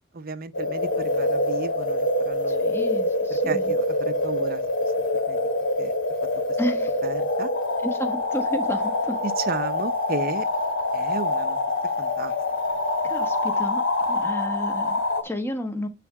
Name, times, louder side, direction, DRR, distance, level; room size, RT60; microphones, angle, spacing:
voice 1, 0.1-2.8 3.4-4.9 5.3-5.4 5.8-5.9 7.0-7.5 9.2-10.5 10.9-11.6 12.0-12.3, right 3 dB, 50° right, 0.7 m, -33 dB
sound 1, 0.5-15.2, left 2 dB, 70° left, 2.3 m, -25 dB
voice 2, 2.5-3.7 6.6-6.9 7.8-9.2 13.0-13.8 14.1-15.9, equal, 10° left, 1.3 m, -31 dB
9.7 x 3.4 x 5.9 m
head